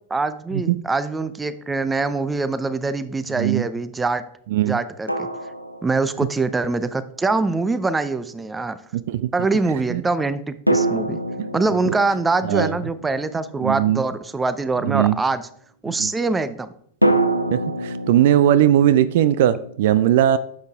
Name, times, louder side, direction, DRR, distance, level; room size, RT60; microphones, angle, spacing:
voice 1, 0.1-4.2 4.7-5.3 5.8-8.8 9.3-11.2 11.5-15.5 15.8-16.7, right 3 dB, 10° right, 14 dB, 0.6 m, -23 dB
sound 1, 1.5-1.6 5.1-6.6 10.7-14.3 17.0-19.8, right 1 dB, 90° right, 0.7 m, -26 dB
voice 2, 3.4-3.7 4.5-4.8 9.1-9.3 9.9-10.0 11.4-11.5 11.9-12.0 12.4-12.8 13.6-14.0 14.8-15.2 16.0-16.1 17.5-20.4, right 11 dB, 55° right, 15 dB, 0.4 m, -19 dB
10.5 x 7.2 x 3.6 m, 0.66 s
figure-of-eight pair, 90°, 0 cm